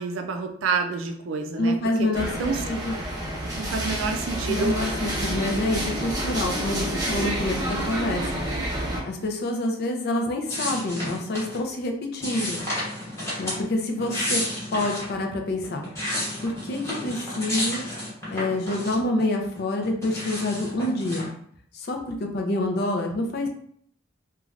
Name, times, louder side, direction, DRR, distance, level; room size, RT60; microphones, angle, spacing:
voice 1, 0.0-2.6 3.5-4.7, right 4 dB, 85° right, 5 dB, 0.4 m, -29 dB
voice 2, 1.6-3.0 4.5-8.4 9.0-12.6 13.4-14.4 14.7-15.8 16.4-17.8 18.3-21.3 21.7-23.5, left 1 dB, 55° left, 3 dB, 0.4 m, -27 dB
sound 1, 2.1-9.0, right 1 dB, 20° right, 0.7 m, -29 dB
sound 2, 10.5-11.6 12.2-13.6 14.0-15.1 15.6-19.2 19.5-21.3, left 1 dB, 15° left, 0.9 m, -31 dB
3.1 x 2.3 x 2.4 m, 0.63 s
head